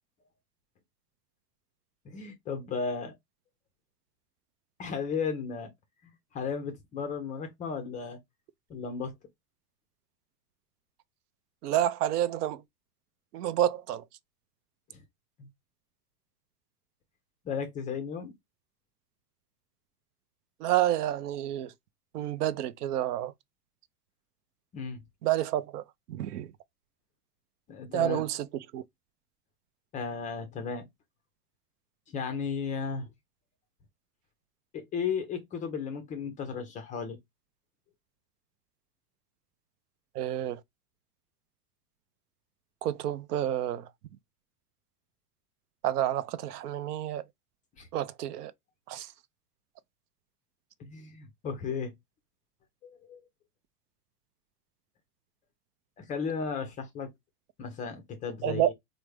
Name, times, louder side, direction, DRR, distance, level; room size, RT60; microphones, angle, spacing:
voice 1, 2.0-3.1 4.8-5.7 6.0-8.2 8.7-9.1 14.9-15.0 17.4-18.3 24.7-25.0 27.7-28.2 29.9-30.9 32.1-33.1 34.7-37.2 47.8-47.9 50.8-51.9 52.8-53.2 56.0-57.1 57.6-58.7, left 6 dB, 20° left, 0.3 m, -35 dB
voice 2, 11.6-12.6 13.3-14.0 20.6-21.7 22.1-23.3 25.2-25.8 26.1-26.5 27.9-28.5 28.7-28.8 40.1-40.6 42.8-43.9 45.8-47.2 47.9-48.5 48.9-49.1 58.4-58.7, right 12 dB, 80° right, 0.5 m, -29 dB
3.3 x 2.1 x 3.1 m
hypercardioid pair, 110°, 46 cm